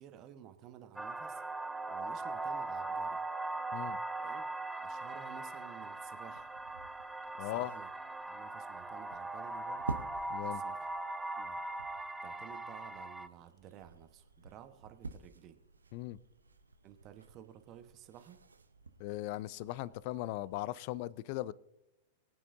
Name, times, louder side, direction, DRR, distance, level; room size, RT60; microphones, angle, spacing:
voice 1, 0.0-1.4 1.9-3.2 4.2-4.5 4.8-6.5 7.3-7.9 8.3-10.0 10.4-10.8 11.4-11.6 12.2-15.6 16.8-18.4, right 10 dB, 35° right, 9 dB, 1.2 m, -53 dB
sound 1, 1.0-13.3, right 2 dB, 5° right, 0.5 m, -40 dB
sound 2, 5.8-20.7, right 3 dB, 80° right, 0.7 m, -50 dB
voice 2, 7.4-7.7 10.3-10.6 15.9-16.2 19.0-21.5, left 16 dB, 50° left, 21 dB, 0.4 m, -38 dB
21.5 x 9.2 x 2.7 m, 0.93 s
figure-of-eight pair, 100°, 0 cm